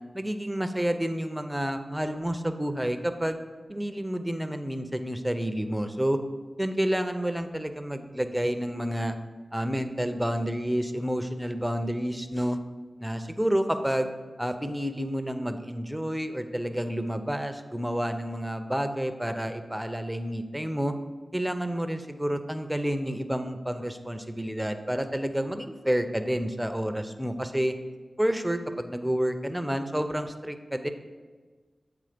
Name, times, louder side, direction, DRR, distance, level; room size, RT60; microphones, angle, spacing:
voice 1, 0.1-3.4 3.7-6.2 6.6-9.2 9.5-12.6 13.0-14.1 14.4-20.9 21.3-27.7 28.2-30.9, equal, 5° right, 8 dB, 0.5 m, -29 dB
8.0 x 3.5 x 5.0 m, 1.4 s
wide cardioid pair, 60°, 0 cm